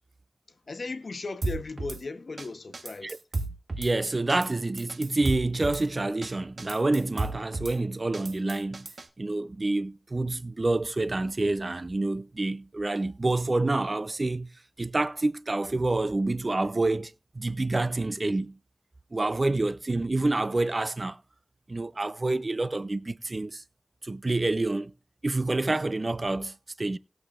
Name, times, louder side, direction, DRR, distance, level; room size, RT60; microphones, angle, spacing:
voice 1, 0.7-3.2, left 3 dB, 75° left, 0.9 m, -36 dB
Drum kit / Snare drum, 1.4-2.0 2.4-2.5 2.7-3.9 4.3-4.5 4.8-5.8 6.2-6.3 6.6-7.8 8.1-9.1, right 2 dB, 75° right, 1.3 m, -33 dB
voice 2, 3.8-8.9 9.2-14.5 14.8-18.6 19.1-21.2 21.7-23.6 24.0-24.9 25.2-27.0, right 2 dB, 45° right, 0.5 m, -28 dB
19.0 x 6.6 x 2.4 m
wide cardioid pair, 50°, 0 cm